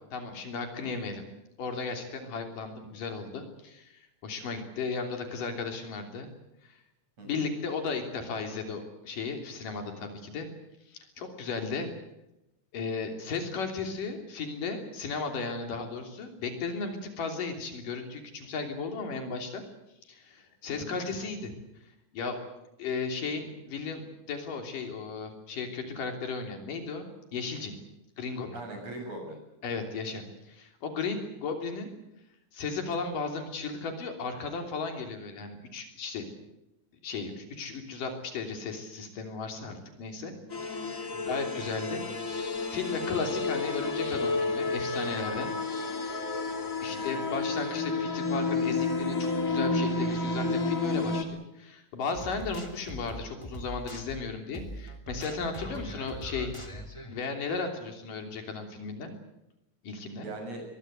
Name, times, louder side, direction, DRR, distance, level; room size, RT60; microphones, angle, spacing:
voice 1, 0.1-1.2 1.6-6.3 6.6-6.8 7.2-10.5 10.9-11.9 12.7-19.6 20.1-21.6 22.1-22.4 22.8-27.7 28.2-28.6 29.6-31.9 32.5-36.2 37.0-40.3 40.6-42.0 42.3-45.5 46.8-56.5 57.1-59.1 59.8-60.3, left 4 dB, 80° left, 5 dB, 4.8 m, -35 dB
voice 2, 28.5-29.4 41.1-41.4 46.9-47.2 60.1-60.6, right 2 dB, 50° right, 4 dB, 7.9 m, -41 dB
sound 1, 40.5-51.2, left 3 dB, 30° left, 2.3 m, -31 dB
sound 2, 52.1-57.2, equal, 10° left, 2.2 m, -42 dB
22.5 x 22.0 x 8.1 m, 0.90 s
omnidirectional pair, 3.7 m